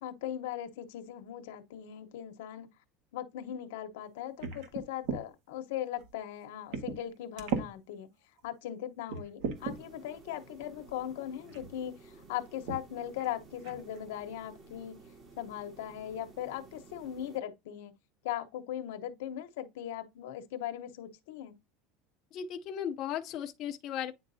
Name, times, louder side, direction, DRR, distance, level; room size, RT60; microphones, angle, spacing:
voice 1, 0.0-2.7 3.1-8.1 8.4-15.0 15.4-17.9 18.2-21.5, left 11 dB, 85° left, 0.9 m, -39 dB
sound 1, 4.4-5.2 6.0-6.1 6.7-7.1 7.4-7.7 8.4-8.5 9.1-9.8 10.9-11.0 11.5-11.7 12.7-12.8 13.2-13.3 13.6-14.0, right 6 dB, 65° right, 1.5 m, -36 dB
sound 2, 9.5-17.4, right 3 dB, 35° right, 1.6 m, -54 dB
voice 2, 22.3-24.1, left 9 dB, 40° left, 0.6 m, -36 dB
9.3 x 3.9 x 2.7 m
supercardioid pair, 155°, 0 cm